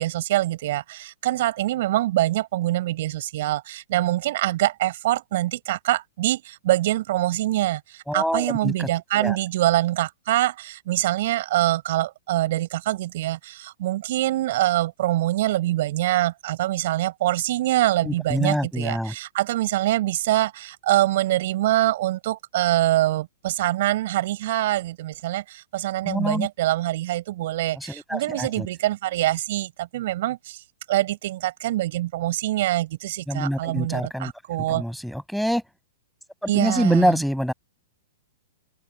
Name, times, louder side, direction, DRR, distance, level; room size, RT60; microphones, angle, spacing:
voice 1, 0.0-30.6 30.9-34.8 36.5-37.1, right 15 dB, 60° right, 6.1 m, -24 dB
voice 2, 8.1-9.4 18.0-19.1 26.1-26.5 27.7-28.7 33.3-34.3 34.7-35.6 36.5-37.5, equal, ahead, 6.2 m, -25 dB
open air
hypercardioid pair, 120°, 0 cm